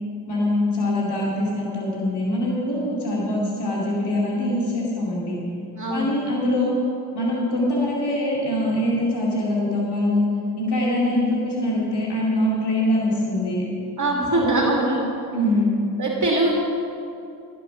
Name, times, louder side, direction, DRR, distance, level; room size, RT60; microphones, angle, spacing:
voice 1, 0.3-5.4 5.9-6.8 7.1-10.2 10.6-13.6 14.3-14.6 15.3-15.7, left 1 dB, 85° left, -4 dB, 2.5 m, -23 dB
voice 2, 5.8-6.2 14.0-15.0 16.0-16.5, right 2 dB, 50° right, -2 dB, 2.5 m, -22 dB
17.0 x 7.4 x 5.8 m, 2.6 s
cardioid pair, 55°, 39 cm